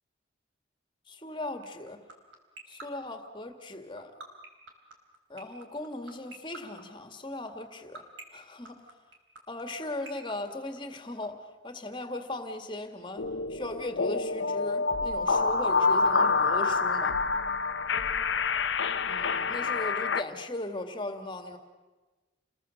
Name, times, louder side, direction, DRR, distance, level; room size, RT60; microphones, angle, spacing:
voice 1, 1.1-2.0 2.7-4.1 5.3-8.0 8.3-8.8 9.5-17.2 19.1-21.6, left 1 dB, 25° left, 7 dB, 2.0 m, -38 dB
sound 1, 1.6-11.3, right 3 dB, 85° right, 3.7 m, -44 dB
sound 2, 13.2-20.2, left 4 dB, 70° left, 0.8 m, -27 dB
29.5 x 21.5 x 6.5 m, 1.2 s
head